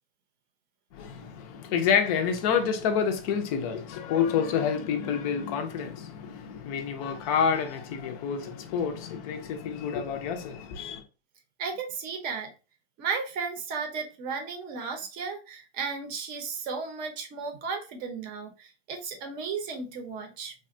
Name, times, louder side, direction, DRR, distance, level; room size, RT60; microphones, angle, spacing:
voice 1, 0.9-11.0, left 7 dB, 35° left, 0.5 m, -28 dB
voice 2, 11.6-12.5 13.0-20.5, right 5 dB, 25° right, 0.7 m, -34 dB
3.4 x 2.2 x 2.5 m
hypercardioid pair, 140°, 34 cm